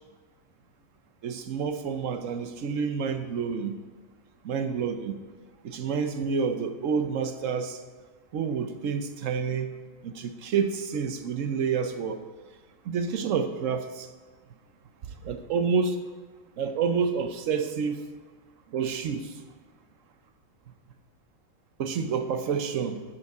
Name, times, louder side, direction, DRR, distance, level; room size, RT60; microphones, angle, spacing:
voice 1, 1.2-3.8 4.4-5.2 5.6-7.8 8.3-9.7 10.0-12.2 12.8-14.1 15.0-16.0 16.6-18.0 18.7-19.4 21.8-23.0, right 6 dB, 70° right, 8 dB, 1.1 m, -29 dB
12.5 x 6.9 x 4.8 m, 1.4 s
omnidirectional pair, 1.4 m